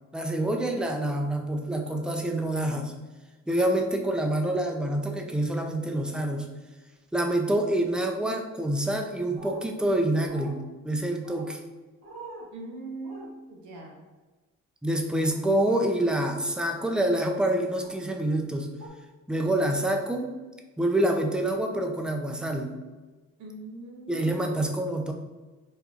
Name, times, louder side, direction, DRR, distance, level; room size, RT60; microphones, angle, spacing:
voice 1, 0.1-2.9 3.5-6.5 7.1-11.6 14.8-18.7 19.3-20.3 20.8-22.8 24.1-25.1, right 1 dB, 5° right, 3 dB, 0.4 m, -27 dB
sound 1, 9.3-9.6 10.3-10.5 11.2-11.5 12.0-12.5 13.0-13.3 15.3-15.4 16.3-16.6 17.8-18.0 18.8-18.9, right 2 dB, 45° right, 1.4 m, -43 dB
voice 2, 12.5-14.0 23.4-25.0, right 2 dB, 75° right, 0 dB, 0.9 m, -42 dB
4.3 x 2.4 x 2.4 m, 1.3 s
cardioid pair, 90°, 30 cm